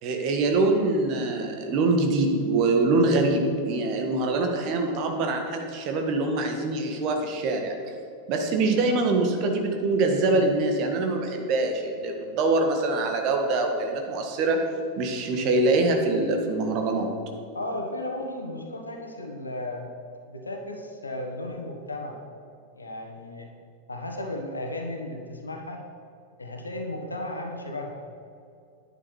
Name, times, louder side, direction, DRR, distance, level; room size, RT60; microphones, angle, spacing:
voice 1, 0.0-7.7 8.3-14.6 15.0-17.1, right 2 dB, 40° right, 3 dB, 1.7 m, -24 dB
voice 2, 17.5-19.9 20.3-22.2 22.7-23.5 23.9-25.8 26.4-28.0, left 1 dB, 80° left, 3 dB, 1.6 m, -34 dB
11.0 x 9.6 x 4.8 m, 2.5 s
figure-of-eight pair, 90°, 0 cm